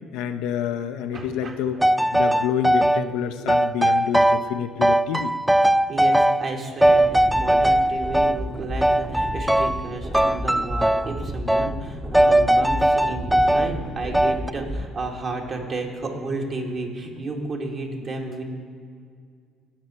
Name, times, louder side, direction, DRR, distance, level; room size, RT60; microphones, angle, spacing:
voice 1, 0.1-1.8 2.1-5.3, left 8 dB, 75° left, 8 dB, 0.5 m, -28 dB
voice 2, 1.1-1.6 5.9-18.4, right 2 dB, 50° right, 1 dB, 1.9 m, -32 dB
sound 1, 1.8-3.0 3.5-4.5 4.8-6.5 6.8-8.4 8.8-9.9 10.1-11.1 11.5-11.7 12.1-13.7 14.1-14.5, right 1 dB, 5° right, 0.3 m, -19 dB
sound 2, 6.8-14.8, right 1 dB, 25° right, 1.1 m, -33 dB
17.0 x 5.9 x 4.3 m, 2.2 s
hypercardioid pair, 60°, 0 cm